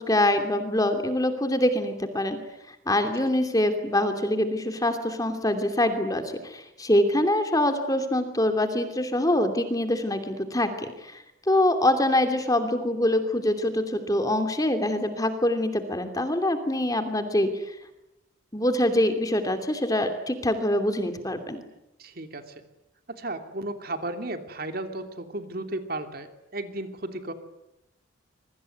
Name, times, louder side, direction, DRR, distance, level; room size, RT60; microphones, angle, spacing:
voice 1, 0.0-2.4 2.7-17.6 18.5-21.6, left 1 dB, 15° left, 6 dB, 2.8 m, -24 dB
voice 2, 22.0-22.4 23.1-27.3, right 2 dB, 45° right, 7 dB, 2.9 m, -34 dB
26.5 x 23.5 x 9.5 m, 0.91 s
head